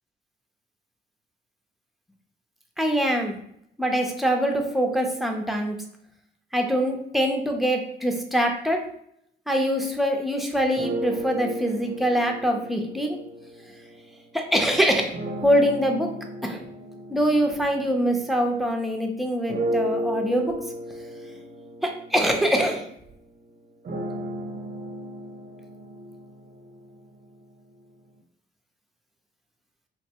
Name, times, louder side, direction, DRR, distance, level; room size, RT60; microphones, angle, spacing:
voice 1, 2.8-3.4 3.8-5.8 6.5-8.8 9.5-13.2 14.3-15.1 15.4-16.1 16.4-16.6 17.1-20.6 21.8-22.8, equal, ahead, 2 dB, 0.5 m, -24 dB
sound 1, 10.8-14.3 15.1-18.9 19.5-27.4, equal, 45° right, 0.5 m, -34 dB
3.4 x 2.1 x 2.8 m, 0.71 s
cardioid pair, 90°, 20 cm